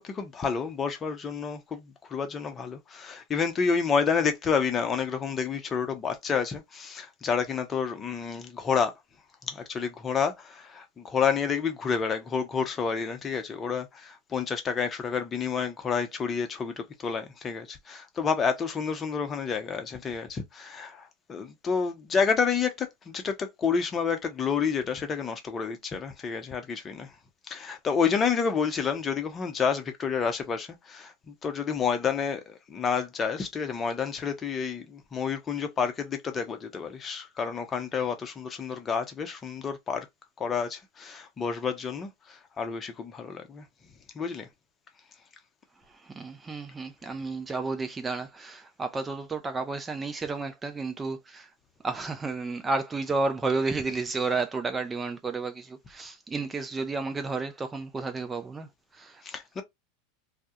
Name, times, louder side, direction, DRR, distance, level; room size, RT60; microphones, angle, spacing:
voice 1, 0.0-8.9 9.4-27.1 27.5-40.1 40.4-43.6 44.1-44.5 59.2-59.6, left 6 dB, 30° left, 0.6 m, -29 dB
voice 2, 46.0-51.5 51.8-58.7 58.9-59.2, right 3 dB, 20° right, 0.4 m, -31 dB
2.2 x 2.1 x 2.7 m
hypercardioid pair, 95°, 0 cm